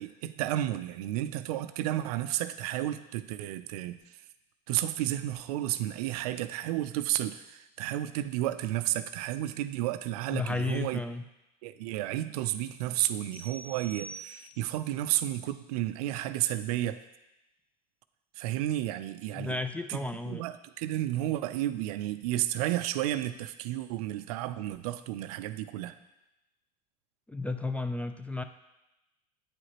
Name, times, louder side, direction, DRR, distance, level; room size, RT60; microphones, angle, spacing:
voice 1, 0.0-4.0 4.7-11.0 11.6-17.0 18.4-19.6 19.9-20.0 20.3-26.0, right 14 dB, 70° right, 12 dB, 0.4 m, -32 dB
voice 2, 10.3-11.2 19.3-20.4 27.3-28.4, left 3 dB, 5° left, 8 dB, 0.3 m, -33 dB
sound 1, 13.3-14.9, right 3 dB, 10° right, 1.7 m, -46 dB
8.9 x 4.9 x 2.9 m, 0.93 s
hypercardioid pair, 90°, 20 cm